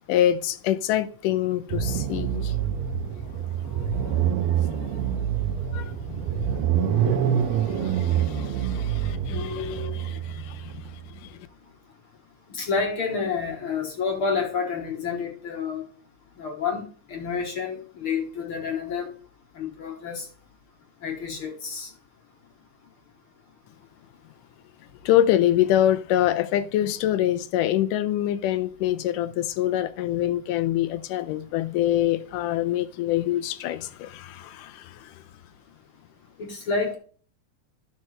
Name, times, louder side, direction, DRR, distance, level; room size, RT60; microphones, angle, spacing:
voice 1, 0.1-2.5 3.3-4.3 4.7-5.1 5.7-11.5 25.0-35.1, left 12 dB, 85° left, 2.3 m, -26 dB
sound 1, 1.7-11.1, right 9 dB, 75° right, 1.7 m, -26 dB
voice 2, 9.3-9.9 12.5-15.8 16.4-19.1 19.6-20.3 21.0-21.9 36.4-37.0, left 5 dB, 55° left, 1.7 m, -29 dB
12.0 x 6.0 x 3.2 m
omnidirectional pair, 3.7 m